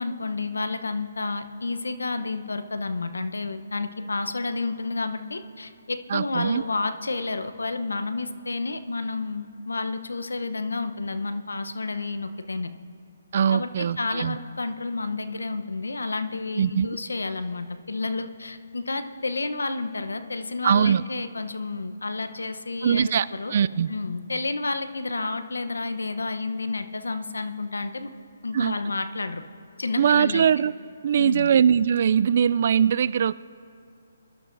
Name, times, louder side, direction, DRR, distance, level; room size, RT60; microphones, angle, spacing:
voice 1, 0.0-12.7 13.5-23.5 23.9-28.1 28.4-29.4 29.8-30.5 31.2-31.5, left 3 dB, 90° left, 10 dB, 0.8 m, -30 dB
voice 2, 6.1-6.6 13.3-14.4 16.6-16.9 20.6-21.0 22.8-23.9 28.5-28.8 30.0-30.7 31.0-33.3, right 8 dB, 50° right, 17 dB, 0.3 m, -21 dB
23.5 x 12.0 x 2.6 m, 2.5 s
hypercardioid pair, 150°, 0 cm